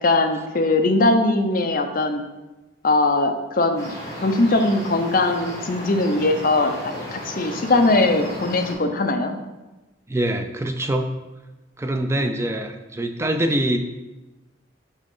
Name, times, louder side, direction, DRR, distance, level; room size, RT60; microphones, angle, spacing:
voice 1, 0.0-2.2 2.8-3.9 4.2-9.4 12.2-12.3, left 2 dB, 45° left, 5 dB, 0.5 m, -20 dB
sound 1, 3.7-8.7, left 1 dB, 15° left, 1.6 m, -34 dB
voice 2, 10.1-11.2 11.8-13.8, right 1 dB, 15° right, 6 dB, 0.3 m, -24 dB
6.3 x 4.1 x 3.7 m, 1.1 s
head